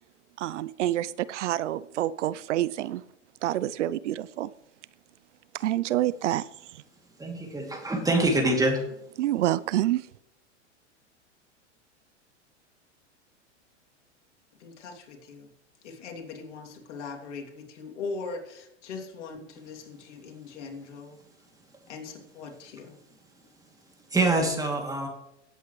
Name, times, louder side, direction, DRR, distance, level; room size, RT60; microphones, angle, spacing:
voice 1, 0.4-3.0 3.4-4.5 5.5-6.8 9.2-10.1, right 14 dB, 75° right, 0.6 m, -28 dB
voice 2, 7.2-8.8 24.1-25.1, right 2 dB, 10° right, 2.7 m, -25 dB
voice 3, 14.6-15.5 15.8-21.2 21.9-23.0, left 4 dB, 70° left, 3.0 m, -40 dB
17.5 x 8.5 x 3.2 m
hypercardioid pair, 110°, 36 cm